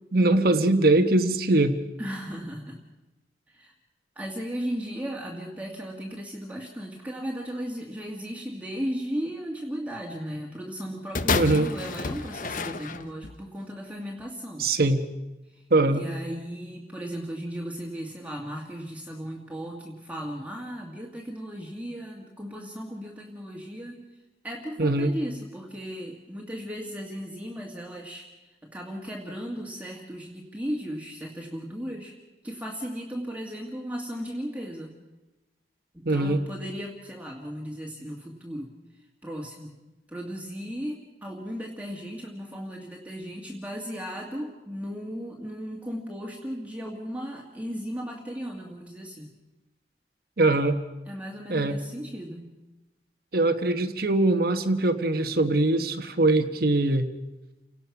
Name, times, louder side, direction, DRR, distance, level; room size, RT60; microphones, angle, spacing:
voice 1, 0.1-1.8 11.3-11.7 14.6-15.0 15.7-16.0 24.8-25.1 36.0-36.4 50.4-50.8 51.5-51.8 53.3-57.1, right 2 dB, 55° right, 7 dB, 1.2 m, -22 dB
voice 2, 2.0-2.8 3.5-3.7 4.2-14.7 15.5-24.0 24.4-32.2 32.4-35.0 35.9-39.7 40.1-49.3 51.1-52.5, equal, 10° right, -1 dB, 2.1 m, -36 dB
sound 1, 11.1-13.4 14.2-14.3, left 4 dB, 50° left, 0.8 m, -29 dB
29.5 x 18.0 x 6.0 m, 1.0 s
head